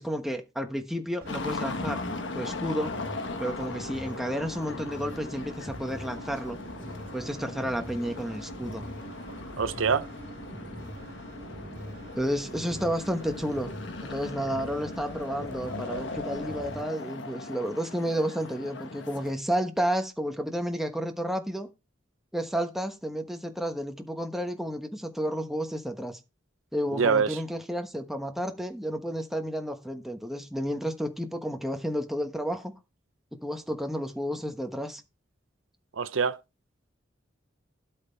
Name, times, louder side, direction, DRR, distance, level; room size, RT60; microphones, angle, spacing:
voice 1, 0.0-2.0 2.3-2.9 3.4-6.6 7.1-8.8 12.1-13.7 14.0-21.7 22.3-26.2 26.7-32.7 33.3-35.0, equal, ahead, 1.1 m, -31 dB
sound 1, 1.2-16.8, right 1 dB, 50° right, 2.3 m, -43 dB
sound 2, 1.3-19.3, left 3 dB, 65° left, 1.3 m, -39 dB
voice 2, 9.6-10.1 26.9-27.4 36.0-36.4, right 5 dB, 85° right, 0.6 m, -25 dB
12.5 x 5.6 x 4.5 m
head